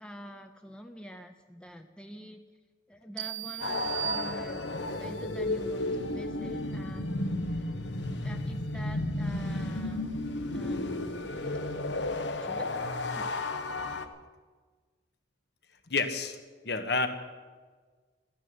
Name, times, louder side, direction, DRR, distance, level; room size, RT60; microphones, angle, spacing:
voice 1, 0.0-2.4 2.9-4.6 4.9-7.3 8.2-10.1 10.5-11.3 12.4-12.7 13.0-13.3, equal, 5° left, 6 dB, 0.6 m, -45 dB
sound 1, 3.2-5.0, right 14 dB, 70° right, 1.3 m, -37 dB
sound 2, 3.6-14.1, left 2 dB, 85° left, 1.1 m, -33 dB
voice 2, 15.9-16.4 16.6-17.1, left 4 dB, 65° left, 8 dB, 1.4 m, -28 dB
14.0 x 10.5 x 9.5 m, 1.4 s
head